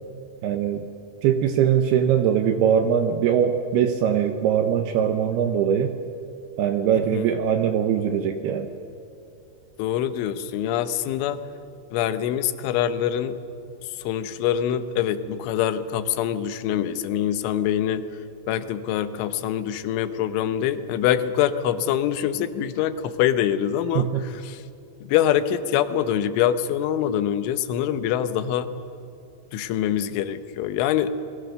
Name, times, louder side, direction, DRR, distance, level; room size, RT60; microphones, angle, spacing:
voice 1, 0.4-0.9 1.2-5.9 6.6-8.7 24.0-24.2, right 8 dB, 75° right, 6 dB, 2.5 m, -21 dB
voice 2, 9.8-11.5 11.9-13.4 13.9-18.1 18.5-24.6 25.0-28.7 29.5-31.2, left 10 dB, 85° left, 11 dB, 3.4 m, -24 dB
28.5 x 21.0 x 6.7 m, 2.6 s
omnidirectional pair, 5.5 m